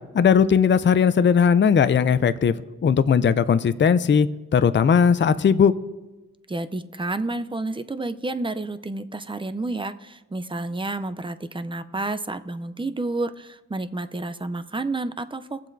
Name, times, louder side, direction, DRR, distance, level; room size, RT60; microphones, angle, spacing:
voice 1, 0.1-2.5 2.8-5.7, left 7 dB, 35° left, 13 dB, 0.4 m, -18 dB
voice 2, 6.5-15.7, right 2 dB, 15° right, 11 dB, 0.5 m, -30 dB
20.0 x 7.4 x 2.6 m, 1.1 s
cardioid pair, 65°, 32 cm